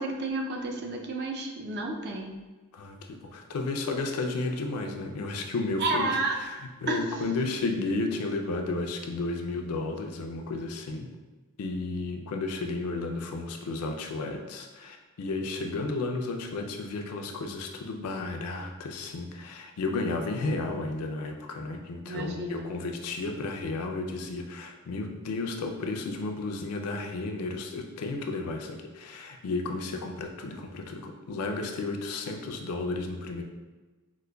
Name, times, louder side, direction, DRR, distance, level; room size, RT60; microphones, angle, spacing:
voice 1, 0.0-2.4 5.8-6.4 6.9-7.0 22.0-22.7, right 2 dB, 50° right, 1 dB, 0.4 m, -31 dB
voice 2, 2.7-11.1 11.6-33.4, left 3 dB, 80° left, 3 dB, 0.4 m, -33 dB
4.7 x 2.1 x 2.2 m, 1.2 s
head